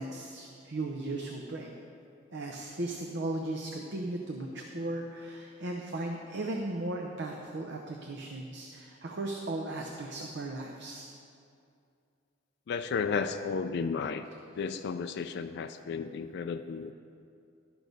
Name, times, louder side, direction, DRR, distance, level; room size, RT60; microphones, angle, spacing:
voice 1, 0.0-1.8 2.3-11.1, right 2 dB, 60° right, 2 dB, 0.7 m, -36 dB
voice 2, 12.7-14.3 14.6-16.9, left 5 dB, 60° left, 8 dB, 0.3 m, -33 dB
12.0 x 6.2 x 5.2 m, 2.5 s
head